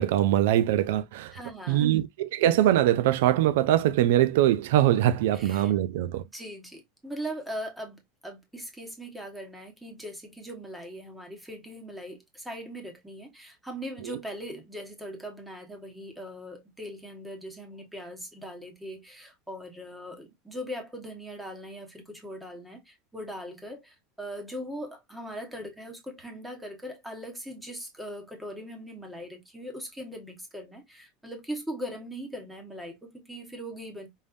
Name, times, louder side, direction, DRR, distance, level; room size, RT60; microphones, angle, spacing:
voice 1, 0.0-1.3 1.7-6.2 14.0-14.2, right 12 dB, 75° right, 0.4 m, -23 dB
voice 2, 1.3-2.0 5.3-5.7 6.3-34.1, equal, 5° right, 1.2 m, -40 dB
5.2 x 3.5 x 2.6 m
supercardioid pair, 170°, 0 cm